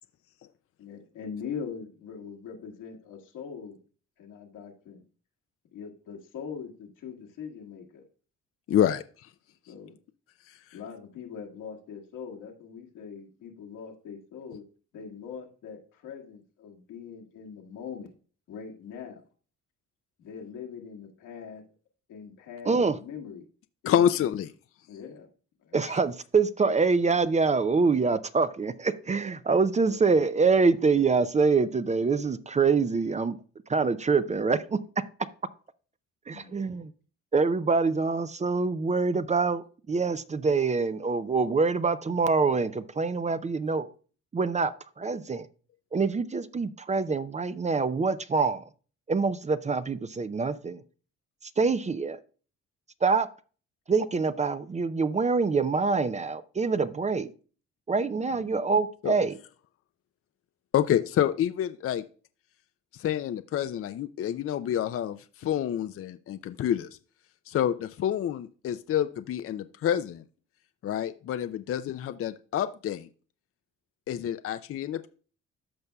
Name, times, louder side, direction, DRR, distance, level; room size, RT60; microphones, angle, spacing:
voice 1, 0.8-3.8 4.2-5.0 5.7-8.0 9.7-10.0 10.7-14.6 14.9-18.1 18.5-19.2 20.2-21.6 22.1-23.5 23.8-24.3 24.9-25.3 25.6-25.8 29.8-30.0 36.3-36.5 58.0-58.6, left 6 dB, 90° left, 1.8 m, -42 dB
voice 2, 8.7-9.3 10.5-10.6 23.9-24.5 25.8-26.0 59.0-59.1 60.7-62.0 62.9-67.0 67.5-70.2 70.8-73.1 74.1-75.1, left 10 dB, 50° left, 0.5 m, -28 dB
voice 3, 22.6-23.0 25.7-33.4 33.7-34.8 36.3-36.9 37.3-43.9 44.3-45.5 45.9-48.7 49.1-50.8 51.4-52.2 53.0-53.3 53.9-57.3 57.9-59.3, right 4 dB, 25° right, 0.5 m, -25 dB
14.0 x 5.4 x 2.3 m
cardioid pair, 90°, 30 cm